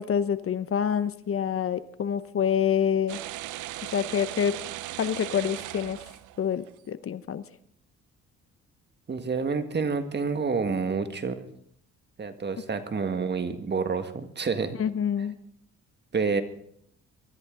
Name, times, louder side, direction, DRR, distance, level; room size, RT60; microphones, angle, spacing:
voice 1, 0.0-3.2 3.8-4.5 5.0-6.0 6.4-7.4 14.8-15.3, left 8 dB, 45° left, 14 dB, 0.8 m, -27 dB
sound 1, 3.1-6.7, right 15 dB, 80° right, 0.6 m, -38 dB
voice 2, 9.1-11.5 12.2-14.8 16.1-16.4, right 5 dB, 35° right, 8 dB, 1.8 m, -28 dB
23.5 x 13.5 x 3.8 m, 0.66 s
cardioid pair, 90°, 30 cm